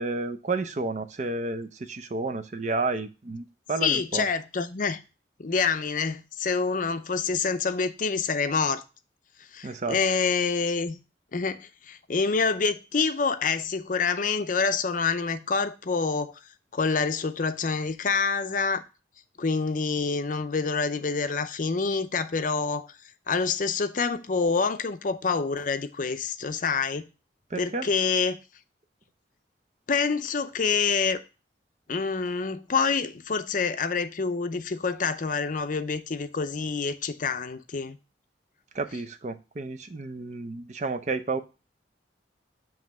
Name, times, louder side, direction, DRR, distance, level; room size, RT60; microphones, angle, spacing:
voice 1, 0.0-4.2 9.6-10.0 27.5-27.8 38.7-41.4, right 3 dB, 40° right, 0.6 m, -31 dB
voice 2, 3.8-5.0 5.4-8.8 9.4-11.0 11.3-16.4 16.7-18.8 19.4-22.9 23.3-27.1 27.6-28.4 29.9-31.2 31.9-38.0, left 5 dB, 45° left, 0.5 m, -27 dB
7.2 x 3.1 x 5.8 m
head